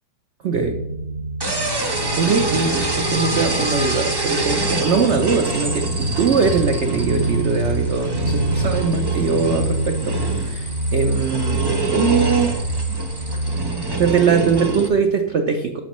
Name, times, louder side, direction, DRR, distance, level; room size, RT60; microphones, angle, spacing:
voice 1, 0.4-0.8 1.8-12.5 14.0-15.8, right 5 dB, 90° right, 5 dB, 0.6 m, -21 dB
sound 1, 0.5-14.5, right 2 dB, 80° left, 1.6 m, -26 dB
sound 2, 1.4-14.9, right 2 dB, 20° right, 0.7 m, -26 dB
12.5 x 5.0 x 3.0 m, 0.98 s
omnidirectional pair, 2.0 m